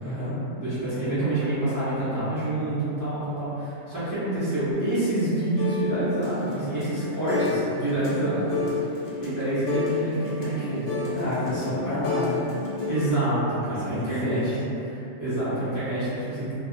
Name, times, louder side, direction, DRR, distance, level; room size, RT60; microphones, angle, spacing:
voice 1, 0.0-0.4 11.1-12.4 13.9-14.4, left 1 dB, 25° left, -15 dB, 0.4 m, -29 dB
voice 2, 0.5-8.9 9.2-11.2 12.9-14.6 14.9-16.5, right 2 dB, 20° right, -14 dB, 0.7 m, -27 dB
sound 1, 4.7-7.6 7.9-13.1, left 4 dB, 70° left, 0.9 m, -31 dB
2.5 x 2.4 x 2.4 m, 2.8 s
omnidirectional pair, 1.4 m